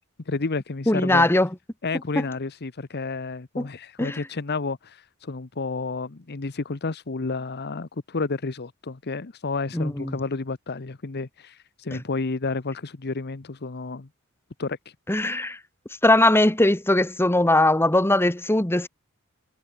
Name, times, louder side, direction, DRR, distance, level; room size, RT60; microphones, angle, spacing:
voice 1, 0.3-1.3 1.8-14.1 14.6-14.8, left 3 dB, 50° left, 0.9 m, -31 dB
voice 2, 0.9-1.5 2.2-2.3 3.6-3.7 4.0-4.2 9.7-10.2 11.9-12.0 15.1-15.6 16.0-18.9, left 1 dB, 10° left, 1.2 m, -20 dB
head